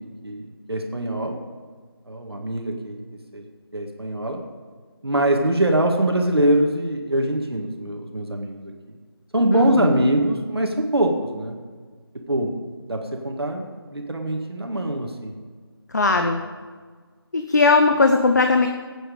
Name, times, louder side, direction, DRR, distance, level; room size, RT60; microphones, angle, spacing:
voice 1, 0.0-1.4 2.1-3.0 3.3-3.4 3.7-4.4 5.0-8.7 9.3-11.6 12.3-12.5 12.9-15.4 16.1-16.3, right 1 dB, 75° right, 3 dB, 2.0 m, -23 dB
voice 2, 9.5-9.9 15.9-16.4 17.3-18.7, left 3 dB, 45° left, 5 dB, 0.8 m, -18 dB
17.0 x 8.9 x 5.1 m, 1.5 s
figure-of-eight pair, 165°, 13 cm